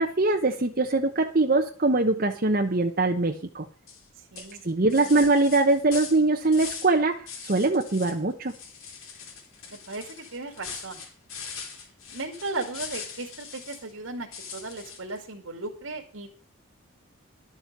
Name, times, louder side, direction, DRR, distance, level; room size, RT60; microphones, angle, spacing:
voice 1, 0.0-3.7 4.6-8.5, right 2 dB, 45° right, 3 dB, 1.0 m, -23 dB
sound 1, 3.9-4.1 4.4-7.0 7.3-8.2 8.5-13.9 14.3-15.2, left 6 dB, 85° left, 4.2 m, -41 dB
voice 2, 4.1-4.6 4.9-5.2 9.7-11.0 12.1-16.3, right 3 dB, 80° right, 3 dB, 2.3 m, -36 dB
12.0 x 7.4 x 6.7 m, 0.40 s
head